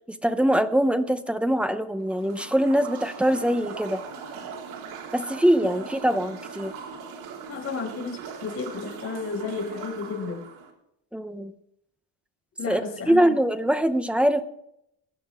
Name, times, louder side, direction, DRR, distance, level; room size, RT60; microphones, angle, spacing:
voice 1, 0.1-4.0 5.1-6.7 11.1-11.5 12.7-12.8 13.1-14.4, right 1 dB, ahead, 9 dB, 0.6 m, -23 dB
sound 1, 2.0-10.7, right 6 dB, 80° right, 3.8 m, -40 dB
voice 2, 7.5-10.4 12.6-13.3, left 4 dB, 30° left, 0 dB, 5.2 m, -32 dB
23.0 x 10.0 x 3.5 m, 0.76 s
cardioid pair, 170°, 47 cm